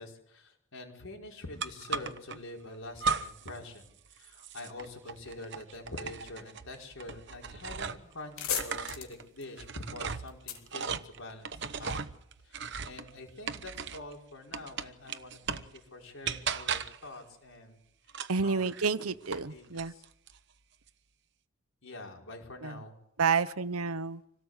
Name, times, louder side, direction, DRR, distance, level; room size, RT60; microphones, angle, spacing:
voice 1, 0.0-11.5 11.8-12.1 12.4-17.8 18.4-18.7 19.4-20.0 21.8-23.0, left 2 dB, 65° left, 1 dB, 5.2 m, -46 dB
sound 1, 1.6-2.4 3.0-3.6 3.9-8.1 8.5-14.1 14.5-15.8 16.2-17.1 18.1-19.5 19.8-20.4, right 5 dB, 55° right, 1.0 m, -37 dB
sound 2, 7.8-7.9 8.1-11.7, left 8 dB, 85° left, 3.4 m, -39 dB
voice 2, 18.3-19.9 22.6-22.8 23.2-24.2, right 5 dB, 90° right, 14 dB, 1.0 m, -29 dB
26.5 x 18.0 x 8.2 m, 0.79 s
head